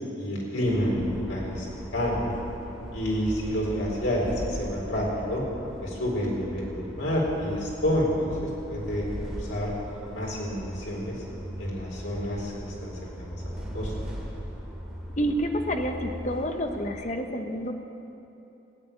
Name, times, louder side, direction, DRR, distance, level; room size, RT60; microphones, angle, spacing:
voice 1, 0.2-1.7 1.9-2.3 2.9-5.4 5.8-9.7 10.1-11.2 11.6-13.9, equal, 85° left, -3 dB, 4.3 m, -29 dB
sound 1, 0.6-16.9, equal, 5° right, 2.2 m, -39 dB
voice 2, 15.2-17.7, equal, 35° left, 4 dB, 1.0 m, -29 dB
15.0 x 9.4 x 9.1 m, 2.9 s
head